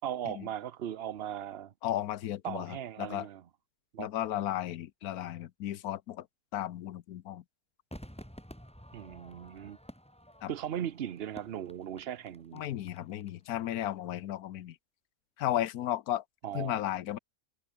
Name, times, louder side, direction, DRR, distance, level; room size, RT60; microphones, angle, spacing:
voice 1, 0.0-1.7 2.4-3.4 3.9-4.1 8.9-9.8 10.5-12.6 16.4-16.8, right 10 dB, 50° right, 0.9 m, -38 dB
voice 2, 1.8-3.3 4.0-6.3 6.5-7.4 10.4-10.5 12.5-14.8 15.4-16.2 16.5-17.2, left 12 dB, 90° left, 1.3 m, -34 dB
Crowd / Fireworks, 7.9-13.3 13.6-13.7, equal, 5° left, 4.5 m, -51 dB
omnidirectional pair, 1.5 m